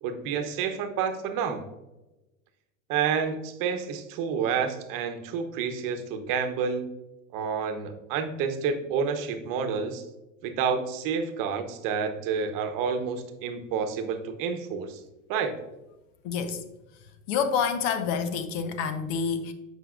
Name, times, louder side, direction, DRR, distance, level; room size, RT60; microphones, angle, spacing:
voice 1, 0.0-1.6 2.9-6.9 7.3-10.0 10.4-15.0 15.3-15.6, right 6 dB, 50° right, 8 dB, 0.9 m, -29 dB
voice 2, 16.2-16.6 17.3-19.5, left 6 dB, 60° left, 9 dB, 1.0 m, -28 dB
7.9 x 5.5 x 2.4 m, 0.99 s
hypercardioid pair, 100°, 42 cm